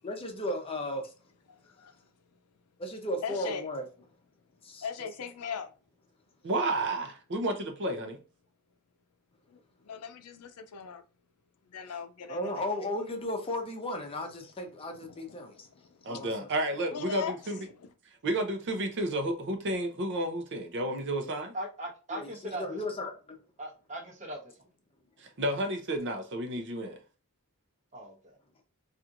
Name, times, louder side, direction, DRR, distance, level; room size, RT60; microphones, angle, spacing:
voice 1, 0.0-1.0 2.8-3.8 4.6-4.9 12.3-15.7 16.1-16.3 22.1-23.4, left 1 dB, 25° left, 0.6 m, -35 dB
voice 2, 3.2-3.6 4.8-5.7 9.5-11.0 11.7-12.6 15.0-15.9 16.1-16.2 16.9-17.6, left 7 dB, 85° left, 0.5 m, -40 dB
voice 3, 6.4-8.2 16.0-17.7 18.2-21.5 25.2-27.0, right 1 dB, 55° right, 0.6 m, -31 dB
voice 4, 21.5-22.8 23.6-24.5 27.9-28.4, right 1 dB, 35° right, 1.0 m, -39 dB
4.2 x 2.5 x 2.5 m
head